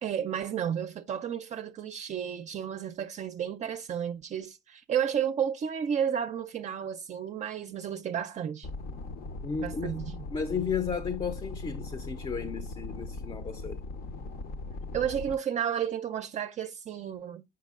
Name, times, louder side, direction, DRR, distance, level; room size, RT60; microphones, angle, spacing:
voice 1, 0.0-8.7 9.6-10.2 14.9-17.4, right 8 dB, 45° right, 0.4 m, -32 dB
sound 1, 8.6-15.4, left 2 dB, 65° left, 0.7 m, -39 dB
voice 2, 9.4-10.0 10.3-13.8, left 6 dB, 30° left, 0.6 m, -33 dB
7.3 x 5.7 x 2.3 m
cardioid pair, 110°, 17 cm